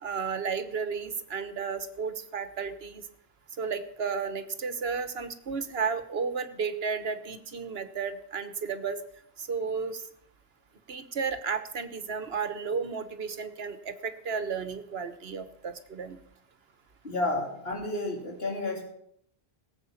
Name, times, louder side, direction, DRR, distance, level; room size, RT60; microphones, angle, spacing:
voice 1, 0.0-3.0 3.6-9.0 9.4-10.0 10.9-16.2, right 5 dB, 75° right, 11 dB, 1.3 m, -33 dB
voice 2, 17.0-18.8, left 2 dB, 70° left, -1 dB, 3.7 m, -31 dB
19.0 x 8.0 x 5.7 m, 0.70 s
omnidirectional pair, 1.0 m